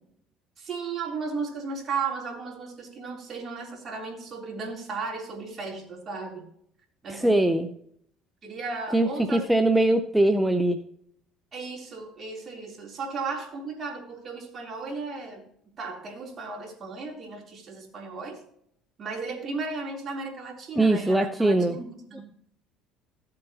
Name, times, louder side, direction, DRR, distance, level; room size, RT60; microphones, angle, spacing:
voice 1, 0.6-6.5 7.0-7.4 8.4-9.4 11.5-15.4 15.8-18.4 19.0-22.2, right 4 dB, 40° right, 0 dB, 3.5 m, -35 dB
voice 2, 7.1-7.7 8.9-10.8 20.8-21.8, right 1 dB, 5° right, 7 dB, 0.8 m, -22 dB
15.0 x 7.7 x 2.9 m, 0.69 s
supercardioid pair, 85°, 0 cm